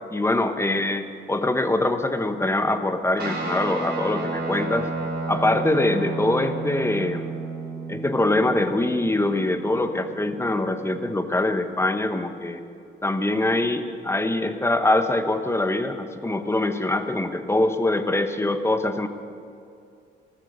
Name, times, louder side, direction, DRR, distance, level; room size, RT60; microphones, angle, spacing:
voice 1, 0.1-4.9 5.3-7.4 7.9-12.6 13.0-19.1, left 2 dB, 15° left, 9 dB, 1.0 m, -23 dB
Guitar, 3.2-11.9, right 3 dB, 55° right, 4.1 m, -33 dB
15.5 x 14.0 x 6.6 m, 2.4 s
cardioid pair, 90°, 20 cm